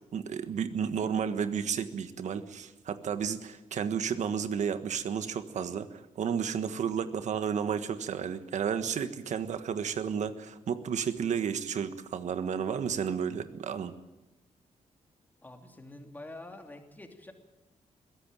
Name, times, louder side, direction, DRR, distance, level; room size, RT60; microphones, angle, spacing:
voice 1, 0.1-13.9, right 7 dB, 70° right, 10 dB, 1.5 m, -32 dB
voice 2, 15.4-17.3, left 2 dB, 15° left, 4 dB, 2.9 m, -47 dB
22.0 x 16.5 x 9.1 m, 1.1 s
wide cardioid pair, 135°, 13 cm